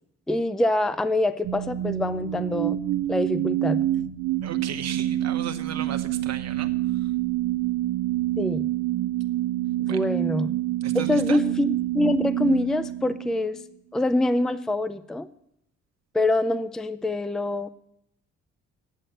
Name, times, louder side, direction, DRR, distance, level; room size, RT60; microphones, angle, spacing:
voice 1, 0.3-2.8 3.1-3.8 8.4-8.7 9.9-10.5 10.9-13.6 13.9-15.3 16.1-17.7, left 1 dB, ahead, 13 dB, 0.4 m, -25 dB
sound 1, 1.4-13.6, right 14 dB, 75° right, 0.6 m, -27 dB
voice 2, 4.4-6.7 9.9-10.0 10.8-11.4, right 8 dB, 60° right, 7 dB, 0.9 m, -35 dB
9.0 x 8.4 x 7.7 m, 0.76 s
cardioid pair, 90°, 30 cm